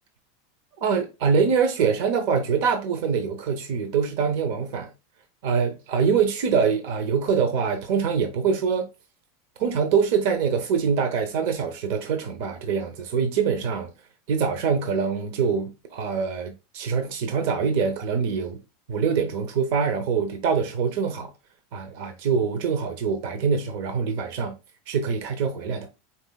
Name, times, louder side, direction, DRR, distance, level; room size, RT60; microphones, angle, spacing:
voice 1, 0.8-4.9 5.4-8.9 9.6-13.9 14.3-18.6 18.9-21.3 21.7-24.5 24.9-25.9, right 6 dB, 60° right, 0.7 m, -24 dB
4.2 x 4.1 x 2.2 m
supercardioid pair, 150°, 0 cm